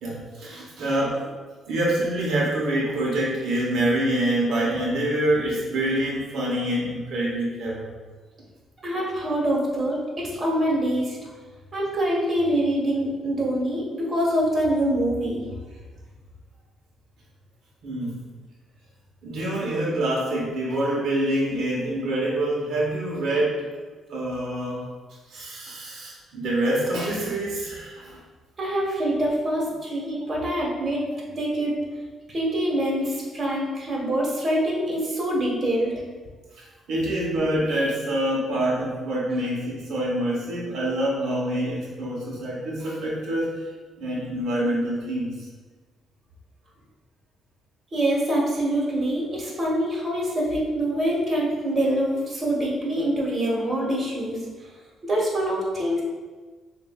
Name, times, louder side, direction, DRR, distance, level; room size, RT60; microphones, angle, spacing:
voice 1, 0.0-1.3 1.7-7.9 17.8-18.2 19.2-23.8 24.1-24.8 25.3-28.2 36.6-43.6 44.0-45.5, right 1 dB, 75° right, -5 dB, 1.0 m, -26 dB
voice 2, 8.8-11.2 11.7-15.5 28.6-31.0 31.4-31.7 32.3-36.0 47.9-54.4 55.0-56.0, right 1 dB, 35° right, -4 dB, 1.4 m, -25 dB
6.6 x 2.6 x 2.4 m, 1.4 s
cardioid pair, 95°, 0 cm